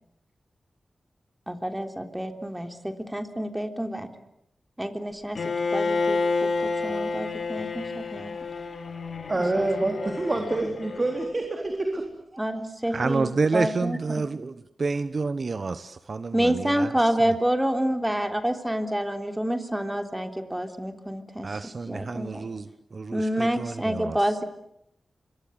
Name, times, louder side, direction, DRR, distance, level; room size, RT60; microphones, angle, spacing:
voice 1, 1.5-4.1 4.8-8.3 9.6-10.0 10.3-10.7 12.4-14.2 16.3-21.6 21.9-22.5 23.1-24.4, right 1 dB, 10° right, 6 dB, 3.4 m, -28 dB
Bowed string instrument, 5.4-11.3, left 3 dB, 75° left, 3.3 m, -29 dB
voice 2, 9.3-12.4, right 2 dB, 40° right, 3 dB, 4.0 m, -27 dB
voice 3, 12.9-16.9 21.4-24.2, right 4 dB, 55° right, 12 dB, 1.0 m, -29 dB
26.0 x 23.5 x 8.1 m, 0.79 s
cardioid pair, 60°, 0 cm